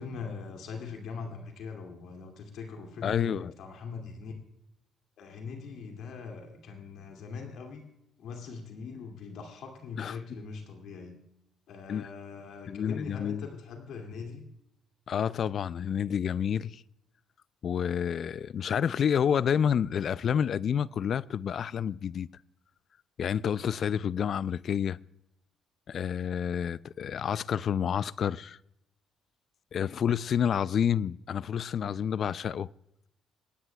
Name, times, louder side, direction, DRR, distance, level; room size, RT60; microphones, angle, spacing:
voice 1, 0.0-4.3 5.2-7.8 8.2-11.2 11.7-14.4 29.8-30.0, left 5 dB, 75° left, 2.3 m, -41 dB
voice 2, 3.0-3.5 10.0-10.2 11.9-12.1 12.7-13.5 15.1-16.8 17.6-22.3 23.2-25.0 25.9-28.6 29.7-32.7, left 8 dB, 55° left, 0.3 m, -29 dB
25.5 x 9.7 x 2.3 m
supercardioid pair, 70°, 0 cm